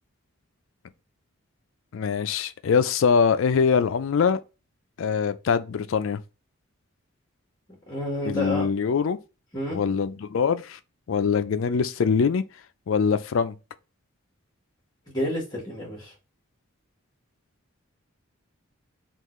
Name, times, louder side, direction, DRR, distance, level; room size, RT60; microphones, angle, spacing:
voice 1, 1.9-4.4 5.0-6.2 8.3-9.2 9.7-10.8 11.1-12.4 12.9-13.5, left 6 dB, 65° left, 0.4 m, -23 dB
voice 2, 7.9-8.6 9.5-9.8 15.1-16.1, left 1 dB, 20° left, 1.4 m, -29 dB
3.7 x 2.4 x 3.0 m
head